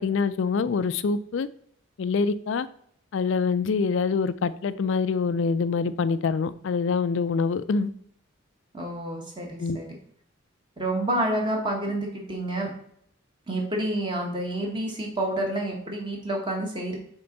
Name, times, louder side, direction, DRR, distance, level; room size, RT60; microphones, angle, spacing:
voice 1, 0.0-1.5 2.0-2.7 3.1-7.9 9.6-9.8, left 5 dB, 60° left, 15 dB, 0.4 m, -25 dB
voice 2, 8.7-10.0 10.8-12.7 13.5-17.0, right 1 dB, 20° right, 0 dB, 1.3 m, -29 dB
6.8 x 4.4 x 3.9 m, 0.68 s
head